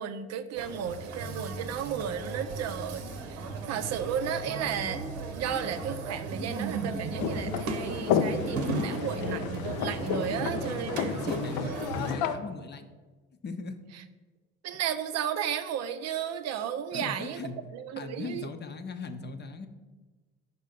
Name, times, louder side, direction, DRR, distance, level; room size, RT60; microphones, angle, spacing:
voice 1, 0.0-3.0 3.3-5.0 5.3-11.1 14.6-18.5, right 8 dB, 55° right, 10 dB, 0.5 m, -34 dB
sound 1, 0.5-12.1, right 3 dB, 80° right, 0.8 m, -36 dB
sound 2, 7.2-12.4, left 8 dB, 70° left, 0.5 m, -31 dB
voice 2, 10.2-10.8 11.1-12.9 13.4-13.8 16.9-17.6 18.0-19.7, left 4 dB, 35° left, 8 dB, 0.7 m, -38 dB
5.4 x 4.2 x 5.1 m, 1.3 s
hypercardioid pair, 60°, 32 cm